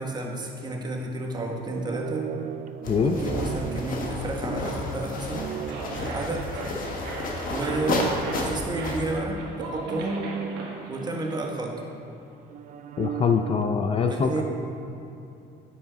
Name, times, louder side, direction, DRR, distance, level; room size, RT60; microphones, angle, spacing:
voice 1, 0.0-2.3 3.0-5.5 6.0-6.5 7.5-8.1 8.4-10.3 10.9-11.9 14.1-14.4, right 2 dB, 25° right, 1 dB, 1.2 m, -31 dB
sound 1, 1.6-7.1 7.5-12.1 12.5-13.7, right 9 dB, 50° right, 0.4 m, -37 dB
sound 2, 2.8-9.2, left 2 dB, 55° left, 1.3 m, -32 dB
voice 2, 2.9-3.2 13.0-14.3, left 6 dB, 35° left, 5 dB, 0.4 m, -23 dB
sound 3, 5.3-11.4, right 2 dB, 80° right, 1.3 m, -39 dB
9.3 x 7.1 x 3.8 m, 2.8 s
cardioid pair, 110°, 17 cm